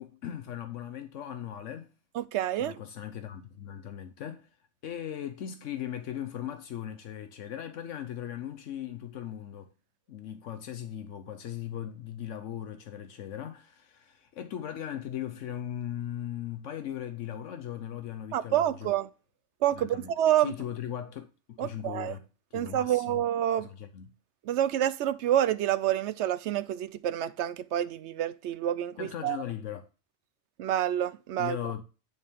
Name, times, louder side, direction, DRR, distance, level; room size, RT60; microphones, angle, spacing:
voice 1, 0.0-1.9 2.6-4.5 4.8-9.7 10.1-18.9 19.7-22.2 22.5-23.2 23.6-24.1 29.0-29.9 31.4-31.8, left 10 dB, 80° left, 1.1 m, -38 dB
voice 2, 2.2-2.8 18.3-19.1 19.6-20.5 21.6-22.1 22.5-23.7 24.5-29.4 30.6-31.6, right 11 dB, 70° right, 0.9 m, -28 dB
10.0 x 4.4 x 3.5 m
omnidirectional pair, 1.3 m